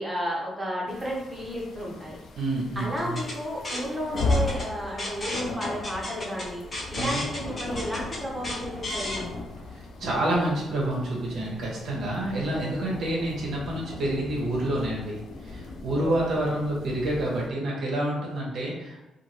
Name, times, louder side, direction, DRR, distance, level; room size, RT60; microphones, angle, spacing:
voice 1, 0.0-2.2 2.7-6.6 6.9-9.2 16.0-16.3, equal, 10° right, -4 dB, 0.9 m, -32 dB
sound 1, 0.9-17.5, left 2 dB, 75° left, 0.4 m, -36 dB
voice 2, 2.4-3.2 6.9-7.2 9.7-19.0, right 1 dB, 70° right, -4 dB, 0.8 m, -28 dB
sound 2, 3.0-9.2, left 1 dB, 35° left, 0.9 m, -35 dB
2.6 x 2.4 x 3.0 m, 1.0 s
cardioid pair, 90°, 0 cm